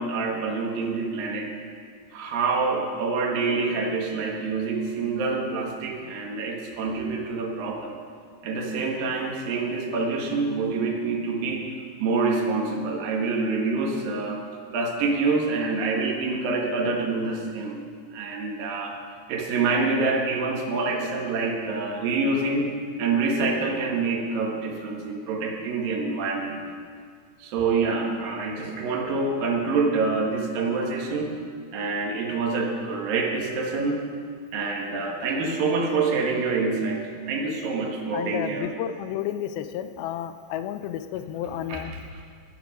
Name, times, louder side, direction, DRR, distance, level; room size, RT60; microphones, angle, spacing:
voice 1, 0.0-1.5 2.1-7.9 8.4-11.7 12.0-14.4 14.7-17.8 18.1-19.0 19.3-22.7 23.0-26.6 27.4-31.3 31.7-34.0 34.5-38.7 41.7-42.2, right 4 dB, 70° right, 0 dB, 3.1 m, -26 dB
voice 2, 38.1-41.9, left 10 dB, 85° left, 10 dB, 2.4 m, -31 dB
14.0 x 9.4 x 5.2 m, 2.1 s
omnidirectional pair, 4.3 m